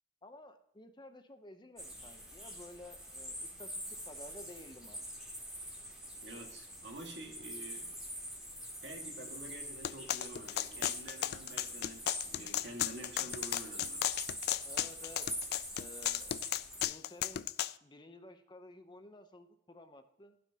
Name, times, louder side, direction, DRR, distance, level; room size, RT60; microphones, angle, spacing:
voice 1, 0.2-5.1 14.6-15.3 15.8-16.4 16.8-17.5 17.8-20.4, left 1 dB, 25° left, 8 dB, 0.8 m, -53 dB
sound 1, 1.8-16.8, equal, 5° right, 2.5 m, -45 dB
voice 2, 6.2-7.9 8.8-14.1, right 2 dB, 85° right, 2 dB, 2.0 m, -48 dB
sound 2, 9.8-17.7, left 12 dB, 60° left, 0.3 m, -35 dB
15.0 x 6.1 x 2.9 m, 0.76 s
head